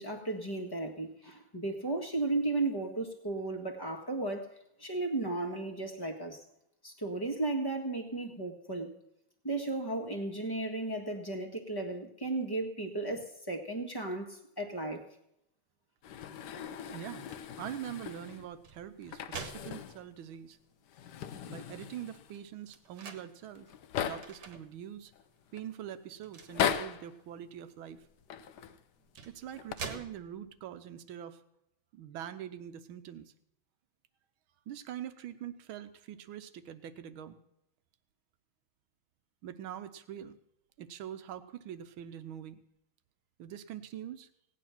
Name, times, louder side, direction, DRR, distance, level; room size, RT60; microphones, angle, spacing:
voice 1, 0.0-4.5 4.8-6.4 6.8-8.9 9.4-15.0, right 2 dB, 10° left, 3 dB, 1.4 m, -35 dB
sound 1, 16.0-18.5 19.0-20.1 20.3-20.4 20.9-22.4 23.2-23.3 23.5-24.5 25.1-25.6 26.4-27.1 28.2-28.8 29.5-29.7, left 8 dB, 65° left, 1.2 m, -38 dB
voice 2, 16.9-17.2 17.6-20.6 21.5-23.7 24.0-25.1 25.5-28.0 29.3-31.4 31.9-33.3 34.7-37.4 39.4-40.4 40.8-42.6 43.4-44.3, right 10 dB, 85° right, 11 dB, 1.6 m, -44 dB
sound 2, 17.3-17.5 18.4-20.4 21.0-21.1 21.4-23.3 24.2-24.6 25.2-25.4 26.2-26.9 28.3-28.4 29.0-30.6, right 5 dB, 60° right, 1.7 m, -46 dB
17.5 x 9.3 x 5.8 m, 0.80 s
omnidirectional pair, 2.2 m